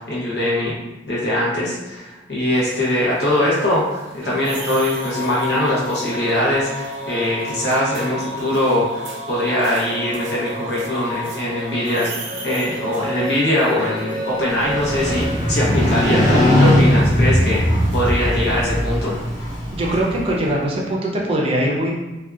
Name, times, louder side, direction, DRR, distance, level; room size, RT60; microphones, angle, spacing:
voice 1, 0.1-0.7 1.1-17.6 17.9-19.1, left 1 dB, 60° left, -6 dB, 0.8 m, -22 dB
sound 1, 2.5-18.7, equal, 85° right, 0.5 m, -32 dB
Motorcycle, 14.5-20.4, left 1 dB, 40° left, 1.2 m, -19 dB
voice 2, 19.7-22.0, right 1 dB, 30° right, -3 dB, 0.4 m, -21 dB
2.6 x 2.2 x 2.3 m, 1.1 s
head